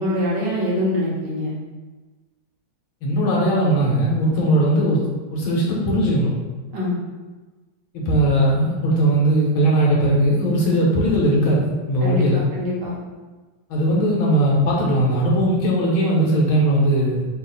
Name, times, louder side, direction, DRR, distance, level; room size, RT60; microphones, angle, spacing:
voice 1, 0.0-1.5 6.7-7.0 12.0-12.2 12.5-13.0, left 1 dB, 60° right, -6 dB, 1.6 m, -24 dB
voice 2, 3.0-6.3 7.9-12.4 13.7-17.3, right 1 dB, 75° left, -4 dB, 1.7 m, -19 dB
4.1 x 2.6 x 3.9 m, 1.3 s
omnidirectional pair, 2.3 m